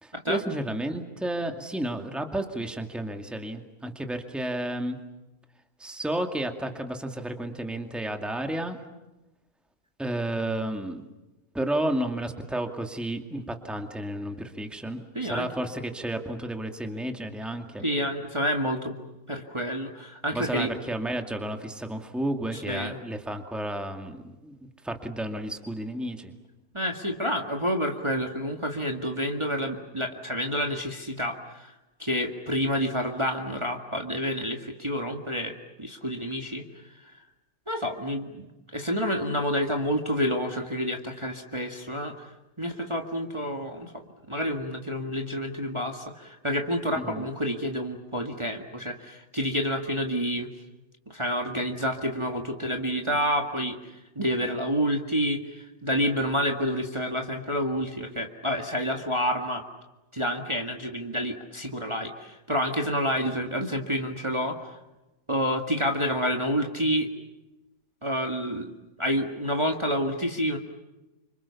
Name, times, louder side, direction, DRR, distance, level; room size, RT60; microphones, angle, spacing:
voice 1, 0.0-5.0 5.8-8.8 10.0-11.0 11.5-17.9 20.3-26.4 47.0-47.3, right 1 dB, ahead, 5 dB, 2.2 m, -32 dB
voice 2, 15.2-15.5 17.8-19.0 19.3-20.7 22.5-23.0 26.7-31.7 32.0-36.8 37.7-42.3 42.6-44.0 44.3-50.5 51.1-59.6 60.1-64.7 65.3-67.1 68.0-68.7 69.0-70.6, equal, 20° right, 2 dB, 2.0 m, -29 dB
29.5 x 26.5 x 7.2 m, 1.0 s
omnidirectional pair, 1.6 m